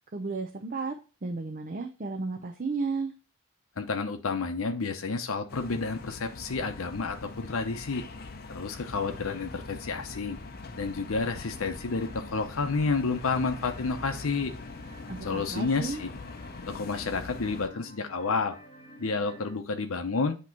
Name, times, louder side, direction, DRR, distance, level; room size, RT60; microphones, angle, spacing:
voice 1, 0.1-1.0 1.2-3.1 15.1-16.0, right 4 dB, 40° right, 4 dB, 0.6 m, -33 dB
voice 2, 3.8-8.0 8.5-10.4 10.8-14.5 15.2-16.1 16.7-18.6 19.0-20.4, left 4 dB, 80° left, 6 dB, 0.7 m, -30 dB
Calle Killa, 5.5-17.7, left 3 dB, 45° left, 0.6 m, -43 dB
sound 1, 7.4-19.5, equal, 25° left, 1.2 m, -52 dB
8.5 x 3.0 x 4.4 m, 0.33 s
head